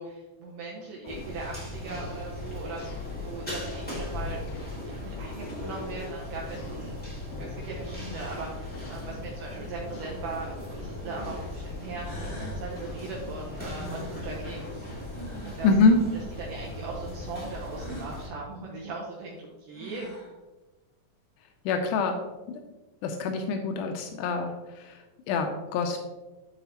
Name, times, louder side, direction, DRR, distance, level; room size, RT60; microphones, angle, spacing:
voice 1, 0.0-4.4 4.9-7.0 7.4-14.7 15.4-15.7 16.4-20.1, right 3 dB, 75° right, -3 dB, 2.2 m, -39 dB
sound 1, 1.0-1.4 1.9-2.1 2.8-3.1 3.7-3.9 4.5-4.8 5.5-6.0 6.5-6.8 7.3-7.6 8.0-8.5 8.7-9.1 9.9-10.8 11.2-11.6 12.2-12.5 12.8-13.1 13.9-14.8 15.6-15.9, left 4 dB, 65° left, 1.7 m, -46 dB
sound 2, 1.0-18.3, left 1 dB, 5° left, 1.1 m, -38 dB
sound 3, 11.6-11.7 12.0-12.7 13.7-15.7 17.7-18.1 19.4-19.5 19.7-20.4, equal, 35° left, 2.7 m, -42 dB
voice 2, 15.6-16.0 21.7-22.2 22.5-22.6 23.0-26.0, left 4 dB, 85° left, 4 dB, 1.8 m, -25 dB
11.5 x 4.0 x 2.9 m, 1.1 s
omnidirectional pair, 4.2 m